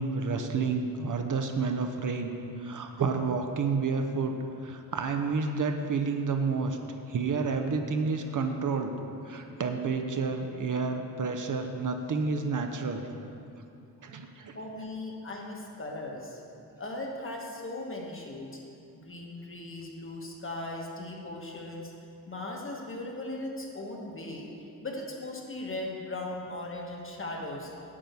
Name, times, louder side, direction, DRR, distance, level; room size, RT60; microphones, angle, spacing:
voice 1, 0.0-6.8 7.1-8.9 9.3-13.0 14.0-14.6, right 4 dB, 50° right, 5 dB, 0.6 m, -30 dB
voice 2, 14.5-16.4 16.8-18.6 18.9-21.9 22.3-24.5 24.8-27.7, left 2 dB, 35° left, 0 dB, 1.1 m, -38 dB
8.7 x 5.4 x 7.9 m, 2.6 s
wide cardioid pair, 180°, 38 cm